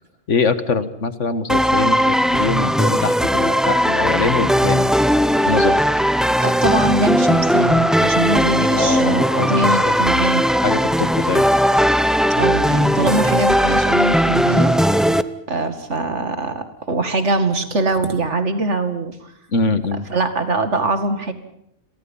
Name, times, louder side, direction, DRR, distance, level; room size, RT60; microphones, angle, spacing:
voice 1, 0.3-4.9 5.5-5.8 8.8-9.5 9.8-9.9 10.6-11.5 19.5-20.1, left 4 dB, 75° left, 12 dB, 1.8 m, -23 dB
sound 1, 1.5-15.2, equal, ahead, 0.7 m, -17 dB
voice 2, 6.4-10.5 12.4-14.7 15.5-19.2 20.1-21.3, right 2 dB, 65° right, 8 dB, 2.6 m, -22 dB
30.0 x 23.5 x 5.6 m, 0.73 s
omnidirectional pair, 1.3 m